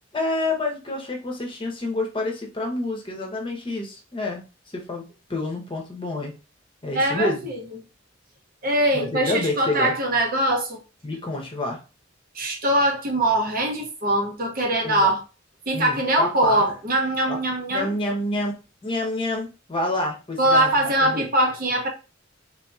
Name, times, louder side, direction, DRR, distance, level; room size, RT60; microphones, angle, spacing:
voice 1, 0.1-4.4 4.7-5.0 5.3-6.3 6.8-7.4 8.9-9.9 11.0-11.8 14.8-15.1 15.7-16.6 17.3-17.4 17.7-20.7 21.0-21.3, left 2 dB, 25° left, 1.0 m, -28 dB
voice 2, 6.9-7.6 8.6-10.8 12.3-15.2 15.7-17.9 20.4-21.9, right 1 dB, 45° right, 0.9 m, -22 dB
3.6 x 2.9 x 2.3 m
head